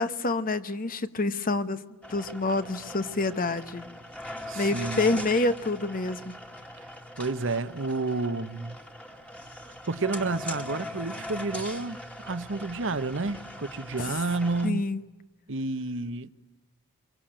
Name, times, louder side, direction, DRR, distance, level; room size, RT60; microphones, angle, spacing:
voice 1, 0.0-1.8 2.1-3.9 4.5-6.3 14.0-14.2 14.6-15.0, left 2 dB, 40° left, 1.2 m, -27 dB
sound 1, 2.0-14.7, left 1 dB, 5° left, 2.0 m, -40 dB
voice 2, 4.5-5.1 7.2-8.8 9.9-14.8 15.5-16.3, right 3 dB, 60° right, 1.1 m, -30 dB
26.0 x 23.5 x 8.9 m
head